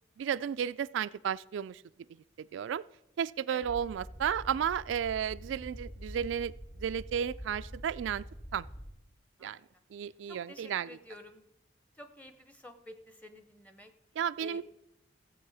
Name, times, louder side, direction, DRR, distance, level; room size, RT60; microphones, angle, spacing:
voice 1, 0.2-1.8 2.5-2.8 3.2-6.5 6.8-8.2 8.5-8.7 9.4-9.6 9.9-11.0 14.2-14.6, right 8 dB, 90° right, 16 dB, 0.3 m, -33 dB
sound 1, 3.6-8.9, equal, 85° left, 5.5 m, -46 dB
voice 2, 10.0-11.4 11.9-13.9 14.4-14.6, left 2 dB, 10° left, 8 dB, 0.7 m, -51 dB
15.0 x 8.1 x 4.8 m, 0.92 s
head